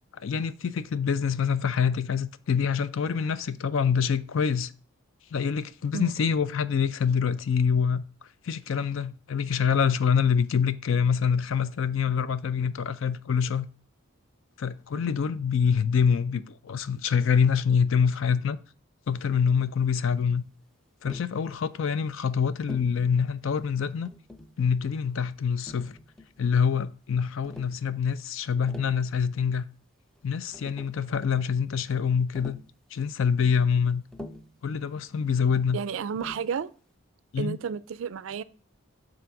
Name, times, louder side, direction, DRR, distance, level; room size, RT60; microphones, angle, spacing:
voice 1, 0.1-4.7 5.3-8.0 8.4-13.7 14.6-18.6 19.1-20.4 21.0-24.1 24.6-26.0 26.4-29.7 30.2-32.6 32.9-34.0 34.6-35.8 37.3-37.6, left 6 dB, 65° left, 0.4 m, -25 dB
Tap, 21.0-21.4 22.7-23.0 24.0-24.6 25.7-26.4 27.4-27.8 28.5-29.0 30.2-30.3 30.5-31.0 32.3-32.7 34.1-34.6 36.2-36.5, left 2 dB, 5° left, 0.4 m, -44 dB
voice 2, 35.7-36.7 37.4-38.4, right 6 dB, 65° right, 0.3 m, -32 dB
6.0 x 3.9 x 5.8 m
head